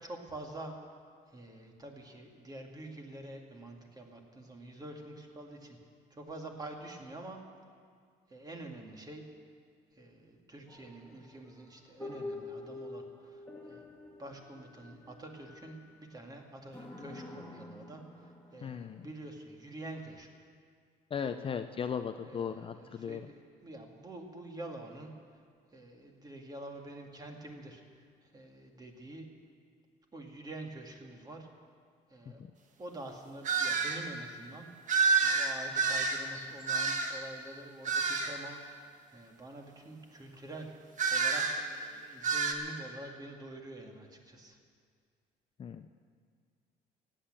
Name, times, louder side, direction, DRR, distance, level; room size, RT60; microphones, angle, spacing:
voice 1, 0.0-0.8 1.3-5.8 6.2-7.4 8.3-9.2 10.0-13.4 13.7-13.8 14.2-18.0 18.5-20.3 21.2-21.4 22.2-25.1 25.7-27.8 28.3-29.3 30.1-31.5 32.1-32.4 32.8-34.7 35.2-38.6 39.1-40.7 41.1-44.6, right 1 dB, 25° right, 2 dB, 2.2 m, -47 dB
sound 1, 10.7-16.1 16.7-19.1 20.1-20.2, left 2 dB, 5° left, 2.5 m, -47 dB
voice 2, 18.6-19.1 21.1-23.3 45.6-45.9, left 7 dB, 30° left, 8 dB, 0.5 m, -37 dB
sound 2, 33.4-34.0 34.9-37.3 37.9-38.4 41.0-41.6 42.2-42.5, right 5 dB, 45° right, 1.5 m, -29 dB
15.5 x 8.8 x 8.9 m, 2.1 s
cardioid pair, 110°, 17 cm